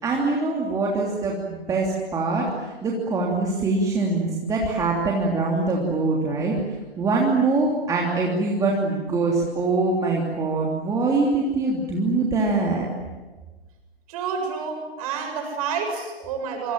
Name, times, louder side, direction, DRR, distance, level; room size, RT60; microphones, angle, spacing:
voice 1, 0.0-6.6 7.0-12.9, right 3 dB, 10° right, -2 dB, 3.0 m, -23 dB
voice 2, 14.1-16.7, right 6 dB, 35° right, 4 dB, 7.8 m, -29 dB
28.0 x 25.5 x 7.5 m, 1.2 s
figure-of-eight pair, 125°, 31 cm